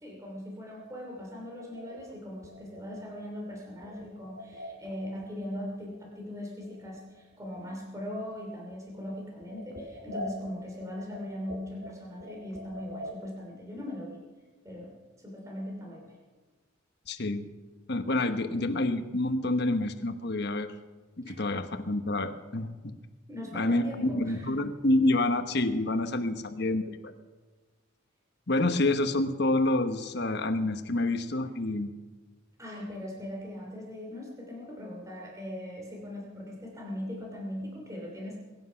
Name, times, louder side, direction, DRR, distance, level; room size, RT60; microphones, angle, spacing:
voice 1, 0.0-14.2 14.6-16.2 21.2-21.3 23.3-24.5 32.6-38.4, left 1 dB, 15° right, -1 dB, 2.9 m, -40 dB
sound 1, 1.5-5.0 5.2-6.0 6.2-6.3 6.6-7.7 8.0-8.4 8.7-8.8 9.0-13.3, equal, 70° right, 3.1 m, -44 dB
voice 2, 17.1-17.5 17.9-20.7 21.2-22.9 23.5-27.0 28.5-31.9, left 2 dB, 55° left, 8 dB, 1.2 m, -28 dB
22.5 x 10.0 x 5.7 m, 1.3 s
head